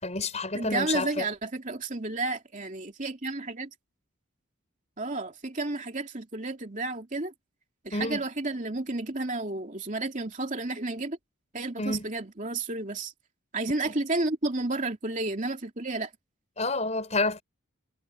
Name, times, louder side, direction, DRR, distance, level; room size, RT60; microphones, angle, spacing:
voice 1, 0.0-1.2 7.9-8.2 11.8-12.1 13.8-13.9 16.6-17.4, left 2 dB, 35° left, 5.1 m, -29 dB
voice 2, 0.5-3.7 5.0-7.3 7.8-11.2 11.5-13.1 13.5-16.1, right 2 dB, 35° right, 2.9 m, -31 dB
head